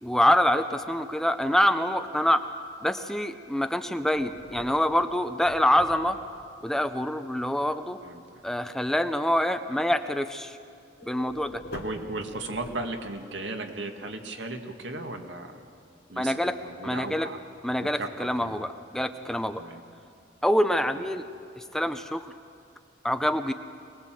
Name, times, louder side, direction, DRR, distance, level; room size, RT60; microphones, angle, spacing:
voice 1, 0.0-2.4 2.8-6.2 6.6-8.0 8.4-10.6 11.0-11.6 16.2-16.6 16.8-17.3 17.6-19.6 20.4-21.2 21.6-22.3 23.0-23.5, left 1 dB, 5° left, 8 dB, 0.6 m, -25 dB
sound 1, 4.1-6.4 11.0-13.3, left 1 dB, 60° left, 2.3 m, -44 dB
voice 2, 11.7-15.6 16.1-16.3 16.6-17.4 17.8-18.5 19.6-19.8 20.9-21.0, right 2 dB, 80° right, 4 dB, 2.0 m, -36 dB
23.5 x 19.5 x 7.6 m, 2.3 s
head